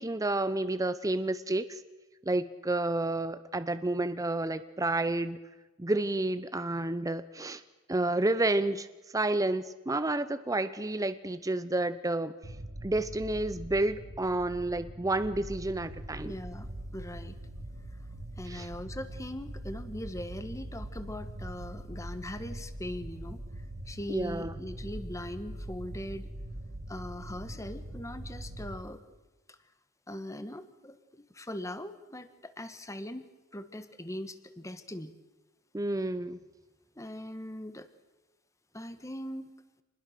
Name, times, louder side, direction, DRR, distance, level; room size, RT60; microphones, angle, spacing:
voice 1, 0.0-1.8 2.3-5.4 5.8-7.6 7.9-8.9 9.1-12.3 12.8-16.3 18.5-18.7 24.1-24.5 35.7-36.4, right 2 dB, 15° right, 12 dB, 0.7 m, -30 dB
sound 1, 12.4-28.8, right 1 dB, 50° right, 2.1 m, -42 dB
voice 2, 16.2-17.4 18.4-23.4 23.9-26.3 26.9-29.0 29.5-29.6 30.1-35.1 37.0-37.9 38.7-39.5, left 1 dB, 15° left, 10 dB, 1.5 m, -41 dB
27.0 x 20.5 x 6.7 m, 1.1 s
head